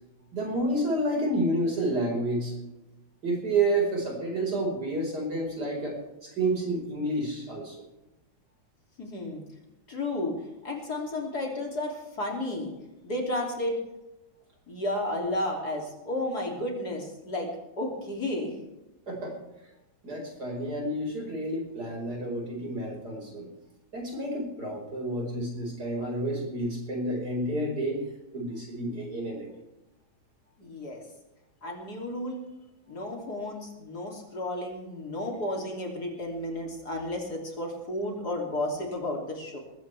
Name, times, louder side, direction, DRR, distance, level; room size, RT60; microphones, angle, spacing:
voice 1, 0.3-2.5 3.2-7.8 19.1-19.4 20.0-23.5 23.9-28.0 28.3-29.5, right 1 dB, 50° right, 0 dB, 5.6 m, -30 dB
voice 2, 9.0-9.4 9.9-10.3 10.6-12.7 13.0-13.8 14.7-17.5 17.8-18.6 30.6-31.0 31.6-32.4 32.9-39.6, left 1 dB, 50° left, 0 dB, 3.5 m, -32 dB
20.5 x 16.5 x 3.4 m, 0.99 s
omnidirectional pair, 2.2 m